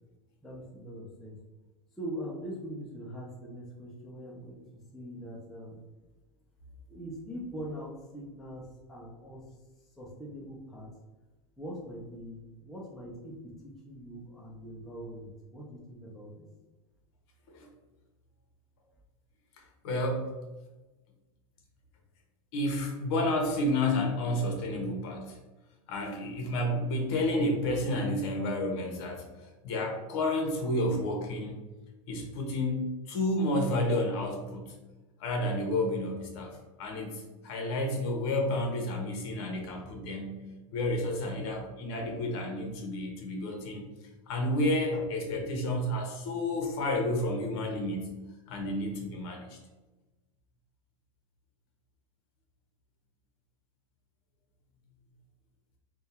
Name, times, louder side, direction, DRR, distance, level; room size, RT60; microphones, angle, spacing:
voice 1, 0.4-1.4 1.9-5.8 6.9-9.5 9.9-10.9 11.6-16.5, equal, ahead, -5 dB, 0.3 m, -42 dB
voice 2, 19.8-20.4 22.5-25.4 25.9-29.3 29.6-31.6 32.1-34.7 35.2-40.4 40.7-43.9 44.3-48.1 48.5-49.6, left 1 dB, 50° left, 1 dB, 1.0 m, -30 dB
3.6 x 2.3 x 4.1 m, 1.2 s
supercardioid pair, 165°, 17 cm